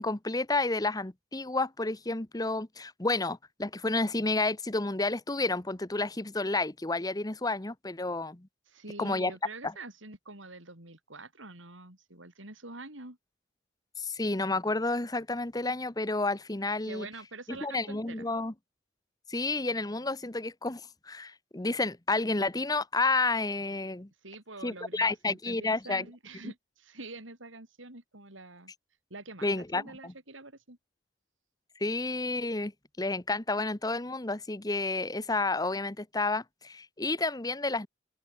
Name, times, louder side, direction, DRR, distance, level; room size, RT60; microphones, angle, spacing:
voice 1, 0.0-8.5 9.0-9.3 9.6-9.7 14.0-17.1 17.6-18.5 19.3-24.1 24.6-26.1 26.4-26.5 29.4-30.1 31.8-32.7 33.0-37.9, left 3 dB, 20° left, 1.0 m, -30 dB
voice 2, 8.7-13.2 16.8-18.3 24.2-28.7 29.1-30.8, right 2 dB, 80° right, 6.6 m, -46 dB
open air
head